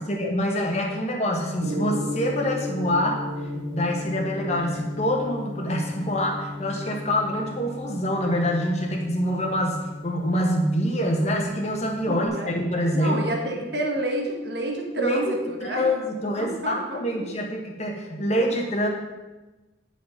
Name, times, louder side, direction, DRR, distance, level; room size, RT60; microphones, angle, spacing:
voice 1, 0.0-3.2 3.5-13.2 15.0-15.3 15.6-18.9, equal, 35° left, 0 dB, 1.3 m, -25 dB
Gong, 1.6-12.3, left 1 dB, 85° right, 1.9 m, -35 dB
voice 2, 12.0-12.5 12.9-15.8 16.4-17.0, right 1 dB, 60° right, 2 dB, 1.4 m, -29 dB
9.8 x 5.7 x 5.7 m, 1.1 s
head